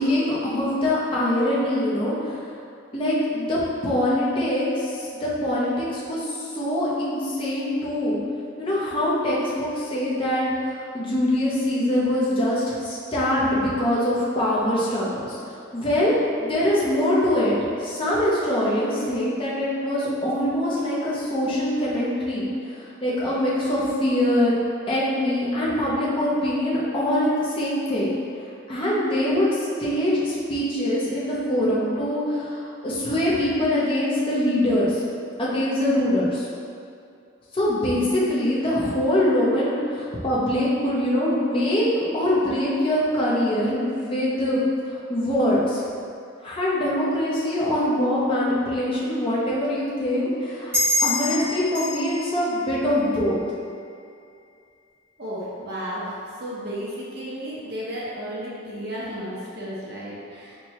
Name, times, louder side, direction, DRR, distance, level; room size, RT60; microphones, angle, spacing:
voice 1, 0.0-2.4 2.9-8.2 8.6-24.6 24.9-28.1 28.7-35.0 35.4-36.5 37.5-45.8 46.4-50.7 51.0-53.4, left 1 dB, 25° left, -7 dB, 0.6 m, -23 dB
sound 1, 50.7-53.8, left 1 dB, 10° right, 0.6 m, -27 dB
voice 2, 55.2-60.6, equal, 50° right, -8 dB, 0.8 m, -33 dB
4.5 x 2.2 x 2.9 m, 2.4 s
head